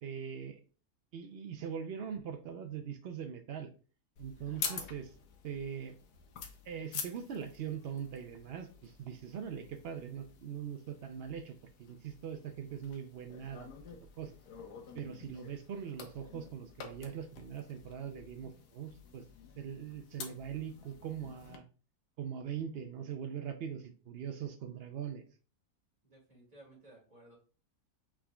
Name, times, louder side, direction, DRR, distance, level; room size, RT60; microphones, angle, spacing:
voice 1, 0.0-0.6 1.1-3.7 4.2-5.1 5.4-6.0 6.6-14.4 14.9-19.3 19.6-21.6 22.2-25.2, right 8 dB, 80° right, 6 dB, 0.5 m, -42 dB
sound 1, 4.2-21.6, left 6 dB, 85° left, 1.3 m, -48 dB
voice 2, 4.4-4.9 26.0-27.3, equal, 30° right, -3 dB, 2.2 m, -57 dB
6.0 x 3.7 x 2.2 m, 0.37 s
omnidirectional pair, 1.6 m